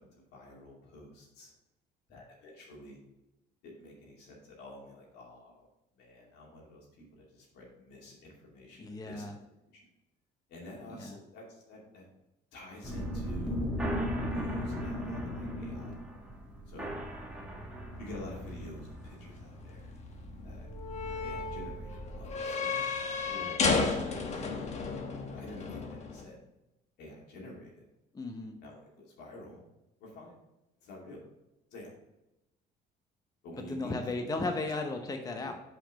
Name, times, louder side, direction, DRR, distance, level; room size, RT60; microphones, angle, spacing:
voice 1, 0.1-1.5 2.1-3.0 3.6-5.7 5.9-9.4 9.7-9.9 10.5-12.0 12.5-13.7 14.2-16.0 16.7-17.0 18.0-19.9 20.4-20.7 21.1-24.4 25.3-26.4 27.0-27.8 28.6-29.6 30.0-30.3 30.8-31.2 31.7-32.0 33.4-34.5 35.4-35.5, left 1 dB, 85° left, -2 dB, 2.5 m, -49 dB
voice 2, 8.8-9.4 10.9-11.2 28.1-28.6 33.7-35.5, left 3 dB, 20° left, 4 dB, 0.8 m, -35 dB
sound 1, 12.8-22.4, equal, 5° right, 1.5 m, -38 dB
sound 2, 17.9-26.2, left 4 dB, 40° left, 1.1 m, -34 dB
5.7 x 5.1 x 5.3 m, 0.93 s
cardioid pair, 110°, 17 cm